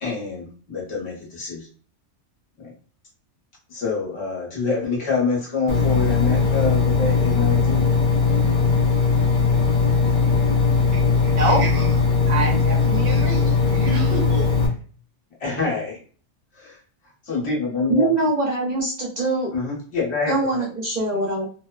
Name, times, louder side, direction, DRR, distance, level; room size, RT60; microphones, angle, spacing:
voice 1, 0.0-1.7 2.6-2.7 3.7-7.9 15.4-16.0 16.5-16.8 17.2-18.1 19.5-20.6, left 4 dB, 65° left, -4 dB, 1.3 m, -26 dB
Engine, 5.7-14.7, left 4 dB, 50° left, 0.7 m, -19 dB
voice 2, 10.9-14.6, right 3 dB, 85° right, 2 dB, 1.0 m, -27 dB
voice 3, 17.9-19.5 20.3-21.5, right 2 dB, 45° right, -4 dB, 0.7 m, -23 dB
2.9 x 2.1 x 2.3 m, 0.43 s
omnidirectional pair, 1.2 m